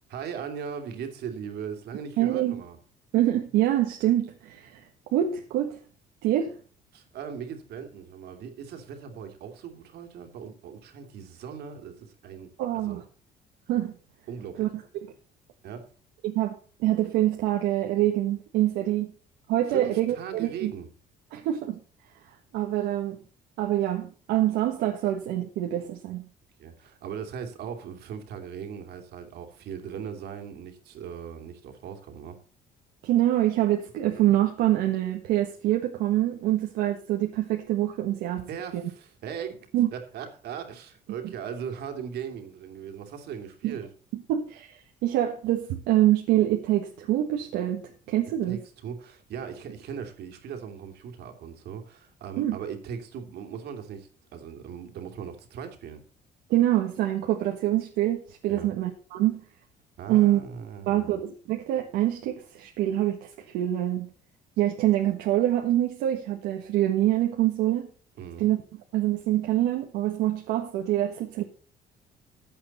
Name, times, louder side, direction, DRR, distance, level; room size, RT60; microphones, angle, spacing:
voice 1, 0.1-2.8 6.9-12.5 12.7-13.0 14.3-14.7 15.6-15.9 19.7-20.9 26.6-32.4 38.5-43.9 48.5-56.0 58.5-58.8 60.0-61.2 68.2-68.5, right 7 dB, 75° right, 5 dB, 2.8 m, -39 dB
voice 2, 2.2-2.6 3.1-4.8 5.1-5.8 6.2-6.6 12.6-13.0 13.7-13.9 14.6-14.7 16.2-19.1 19.5-20.7 21.3-21.8 22.5-23.1 23.6-26.2 33.0-38.5 38.7-38.8 39.7-39.9 43.6-43.8 44.1-48.6 52.4-52.6 56.5-59.4 60.1-60.4 60.9-64.1 64.6-67.9 68.4-68.6 68.9-71.4, right 13 dB, 90° right, 2 dB, 1.5 m, -25 dB
15.0 x 8.8 x 4.2 m, 0.39 s
cardioid pair, 110°, 17 cm